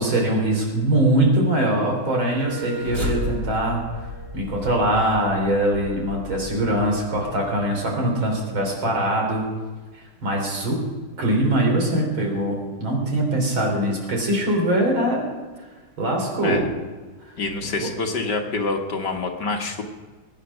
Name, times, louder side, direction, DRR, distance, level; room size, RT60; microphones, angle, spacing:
voice 1, 0.0-3.8 4.3-9.4 10.2-10.8 11.2-15.2 16.0-16.7 17.3-17.4 17.8-17.9, right 1 dB, 75° right, 1 dB, 4.3 m, -22 dB
Wind instrument woodwind instrument, 2.0-8.7, right 2 dB, 40° left, 4.3 m, -41 dB
sound 1, 2.3-7.6, left 1 dB, 30° right, 2.2 m, -34 dB
voice 2, 17.4-19.8, left 3 dB, 60° left, 3 dB, 2.0 m, -26 dB
21.0 x 8.9 x 6.3 m, 1.4 s
omnidirectional pair, 2.2 m